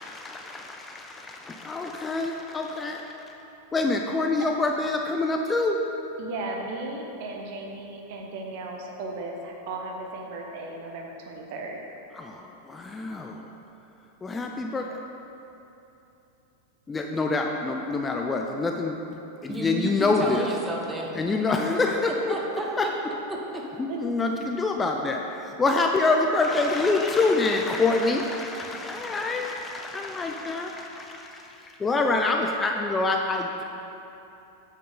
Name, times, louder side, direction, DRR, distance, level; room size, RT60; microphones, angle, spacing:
voice 1, 0.0-3.0 3.7-5.8 12.2-13.4 14.2-15.0 16.9-20.5 21.1-22.3 22.8-22.9 23.8-33.6, left 3 dB, 15° left, 2 dB, 0.4 m, -26 dB
voice 2, 6.2-11.8 23.9-24.0, right 2 dB, 50° right, 1 dB, 1.0 m, -36 dB
voice 3, 19.5-21.2 22.3-22.9 23.3-23.6 25.0-25.2, right 2 dB, 10° right, -2 dB, 1.2 m, -32 dB
8.3 x 6.7 x 3.8 m, 2.9 s
figure-of-eight pair, 90°, 0 cm